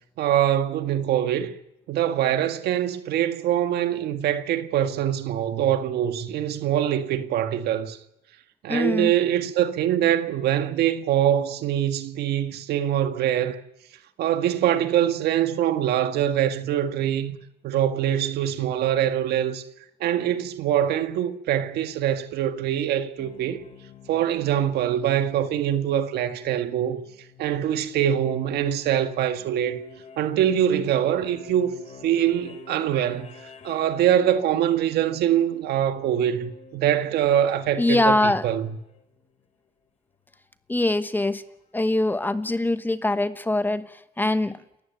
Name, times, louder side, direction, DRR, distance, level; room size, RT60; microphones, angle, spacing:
voice 1, 0.2-1.5 1.9-8.0 8.6-13.6 14.2-17.4 17.6-19.6 20.0-23.6 24.1-27.0 27.4-29.8 30.2-31.7 32.0-33.3 33.6-38.8, right 10 dB, 75° right, 1.8 m, -23 dB
voice 2, 8.7-9.1 37.8-38.5 40.7-41.4 41.7-43.9 44.2-44.6, left 2 dB, 10° left, 1.1 m, -23 dB
sound 1, 23.2-39.4 41.0-41.1, left 5 dB, 40° left, 3.9 m, -49 dB
29.0 x 14.5 x 9.1 m
cardioid pair, 110°, 17 cm